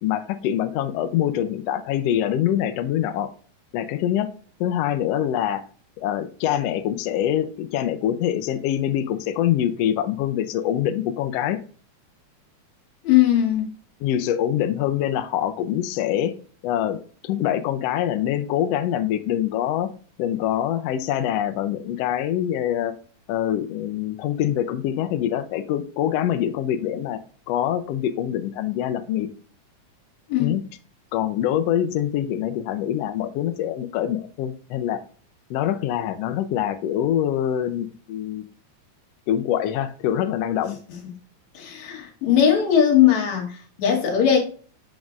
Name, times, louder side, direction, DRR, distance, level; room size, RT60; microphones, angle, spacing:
voice 1, 0.0-3.3 3.7-4.3 4.6-5.6 6.0-11.6 14.0-16.3 16.6-19.9 20.2-22.9 23.3-27.2 27.5-29.3 30.4-30.6 31.1-35.0 35.5-38.4 39.3-40.8, left 11 dB, 85° left, 1.4 m, -24 dB
voice 2, 13.0-13.7 30.3-30.5 41.5-44.4, left 9 dB, 65° left, 2.7 m, -19 dB
7.3 x 6.0 x 2.5 m
omnidirectional pair, 3.5 m